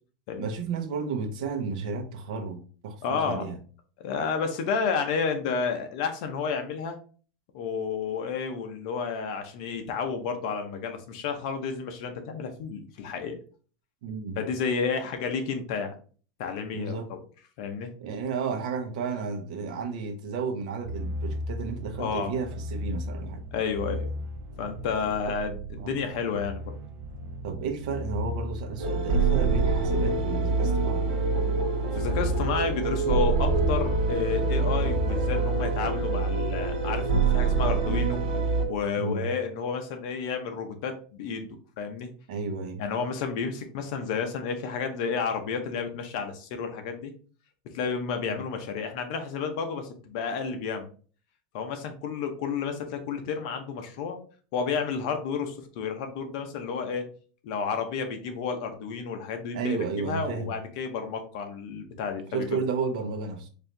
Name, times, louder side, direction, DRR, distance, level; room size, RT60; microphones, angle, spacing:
voice 1, 0.3-3.6 14.0-14.4 16.7-17.1 18.0-23.4 25.8-25.9 27.4-31.1 39.0-39.3 42.3-42.8 48.3-48.4 59.5-60.5 62.3-63.5, right 5 dB, 65° right, 4 dB, 0.8 m, -32 dB
voice 2, 3.0-3.4 4.0-7.0 7.5-13.4 14.4-15.9 16.4-17.2 17.6-17.9 22.0-22.3 23.5-24.1 24.6-26.7 31.9-38.2 38.7-41.5 41.8-42.1 42.8-47.1 47.7-50.9 51.5-54.2 54.5-57.1 57.4-62.5, left 5 dB, 50° left, 6 dB, 0.8 m, -31 dB
sound 1, 20.9-37.4, equal, 35° right, 0.5 m, -36 dB
sound 2, 28.8-38.7, right 4 dB, 85° right, 1.0 m, -25 dB
4.3 x 2.7 x 3.3 m, 0.40 s
supercardioid pair, 170°, 5 cm